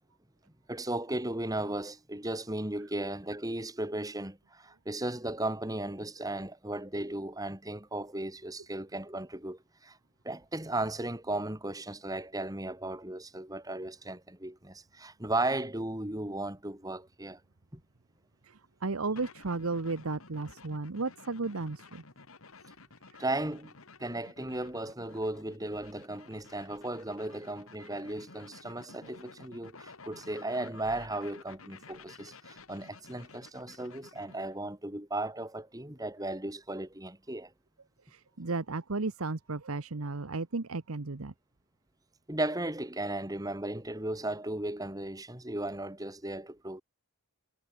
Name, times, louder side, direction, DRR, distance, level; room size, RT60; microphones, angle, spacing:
voice 1, 0.7-10.0 10.2-17.4 17.7-17.8 23.2-23.7 24.0-37.5 42.3-46.8, right 1 dB, 15° right, 2.6 m, -36 dB
voice 2, 18.4-22.0 38.1-41.3, right 3 dB, 80° right, 1.1 m, -34 dB
sound 1, 19.2-34.6, left 4 dB, 75° left, 2.5 m, -53 dB
head